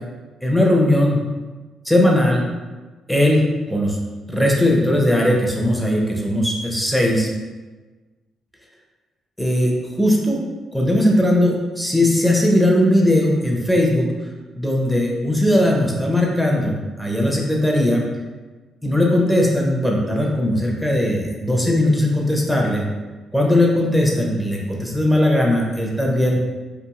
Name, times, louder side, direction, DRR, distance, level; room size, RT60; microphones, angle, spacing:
voice 1, 0.4-1.2 1.8-2.5 3.1-4.0 4.3-7.3 9.4-9.7 10.0-10.4 10.7-14.1 14.5-18.0 18.8-22.8 23.3-26.4, left 1 dB, ahead, -2 dB, 0.5 m, -18 dB
2.9 x 2.4 x 2.4 m, 1.3 s
cardioid pair, 90°, 0 cm